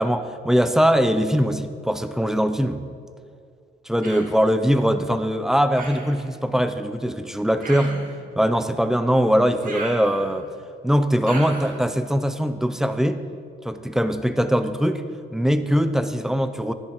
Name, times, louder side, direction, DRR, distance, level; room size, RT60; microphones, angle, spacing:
voice 1, 0.0-2.8 3.9-8.0 8.4-10.4 10.8-13.2 13.6-15.0 15.3-16.7, equal, ahead, 11 dB, 0.6 m, -21 dB
Human voice, 4.0-4.4 5.8-6.2 7.6-8.2 9.6-10.5 11.3-11.8, right 2 dB, 45° right, 2.1 m, -35 dB
11.0 x 11.0 x 4.5 m, 2.2 s
cardioid pair, 90°, 20 cm